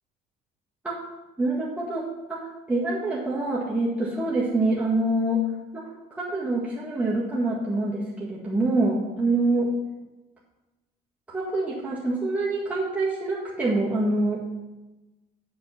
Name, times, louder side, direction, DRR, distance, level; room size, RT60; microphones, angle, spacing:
voice 1, 1.4-5.4 5.7-9.7 11.3-14.4, right 2 dB, 10° right, -6 dB, 1.9 m, -26 dB
7.6 x 6.8 x 5.8 m, 1.1 s
cardioid pair, 110°, 17 cm